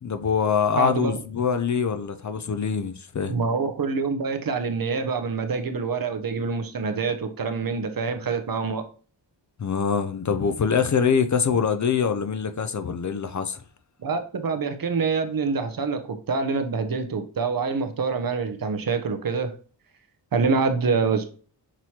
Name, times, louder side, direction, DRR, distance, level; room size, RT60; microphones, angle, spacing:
voice 1, 0.0-3.4 9.6-13.6, left 6 dB, 45° left, 0.5 m, -24 dB
voice 2, 0.8-1.1 3.3-8.8 14.0-19.5 20.3-21.2, right 4 dB, 50° right, 0.7 m, -26 dB
6.0 x 3.0 x 2.8 m
wide cardioid pair, 80°, 44 cm